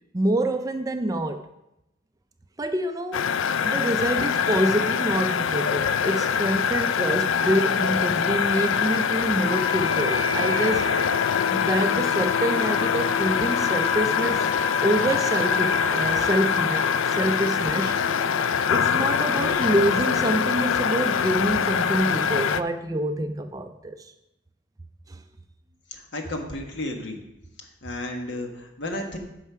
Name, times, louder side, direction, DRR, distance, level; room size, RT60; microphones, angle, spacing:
voice 1, 0.1-1.5 2.6-3.3 3.6-10.9 11.5-14.5 14.8-18.0 18.4-24.1 25.1-25.2, right 1 dB, 20° right, 7 dB, 0.4 m, -26 dB
sound 1, 3.1-22.6, left 7 dB, 80° left, 0.4 m, -24 dB
Wind instrument woodwind instrument, 9.4-19.4, left 5 dB, 25° left, 2.7 m, -32 dB
voice 2, 25.9-27.2 27.8-29.2, left 1 dB, 60° left, 3 dB, 1.4 m, -33 dB
9.4 x 5.6 x 5.6 m, 0.92 s
head